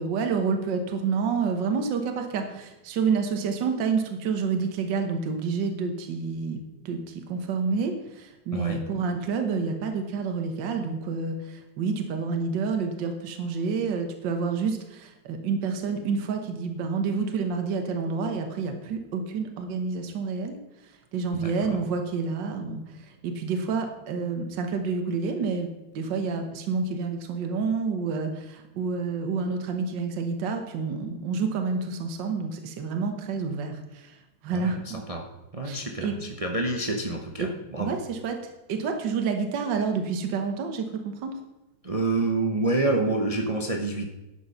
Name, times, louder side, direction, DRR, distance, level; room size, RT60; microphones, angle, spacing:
voice 1, 0.0-20.6 21.1-35.0 35.6-36.1 37.4-37.5 37.8-38.4 38.7-41.3, right 5 dB, 65° right, 5 dB, 1.7 m, -29 dB
voice 2, 8.5-8.8 21.3-21.8 34.5-35.3 35.5-38.0 41.8-44.1, right 2 dB, 40° right, 2 dB, 0.5 m, -28 dB
11.5 x 6.9 x 5.6 m, 0.99 s
omnidirectional pair, 2.1 m